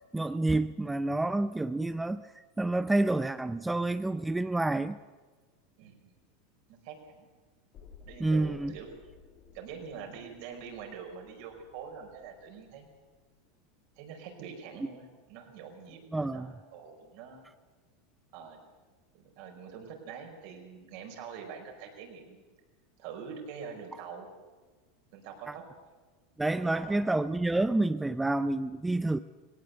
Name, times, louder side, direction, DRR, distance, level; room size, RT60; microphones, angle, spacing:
voice 1, 0.1-5.0 8.2-8.8 16.1-16.5 25.5-25.6 26.4-29.2, right 2 dB, 10° right, 13 dB, 0.5 m, -29 dB
voice 2, 5.8-6.2 6.7-7.3 8.0-9.0 9.5-12.9 14.0-17.4 18.3-18.6 19.1-22.4 23.0-24.3 25.1-25.6 26.5-27.0, right 6 dB, 65° right, 3 dB, 5.0 m, -45 dB
sound 1, 7.7-13.7 14.0-14.1, left 6 dB, 45° left, 2.6 m, -57 dB
18.0 x 18.0 x 8.2 m, 1.4 s
hypercardioid pair, 105°, 0 cm